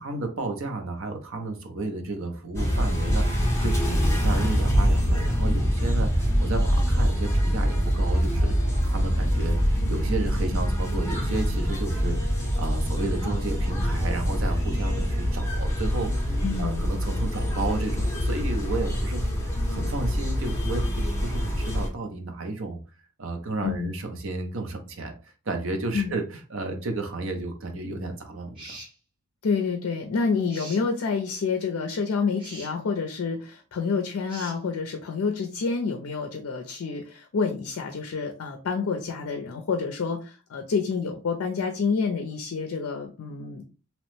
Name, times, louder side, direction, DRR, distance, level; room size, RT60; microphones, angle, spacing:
voice 1, 0.0-8.5 8.8-9.6 9.9-19.3 19.7-20.8 21.2-22.8 23.2-25.1 25.5-28.8, right 2 dB, 60° right, 5 dB, 0.6 m, -32 dB
sound 1, 2.5-21.9, equal, 10° left, 0.7 m, -25 dB
voice 2, 16.4-16.9 23.6-23.9 25.9-26.1 29.4-43.7, left 5 dB, 70° left, 4 dB, 0.4 m, -28 dB
sound 2, 28.5-28.9 30.5-30.8 32.4-32.7 34.3-34.6, right 2 dB, 25° right, 0.9 m, -42 dB
2.9 x 2.0 x 3.0 m, 0.35 s
head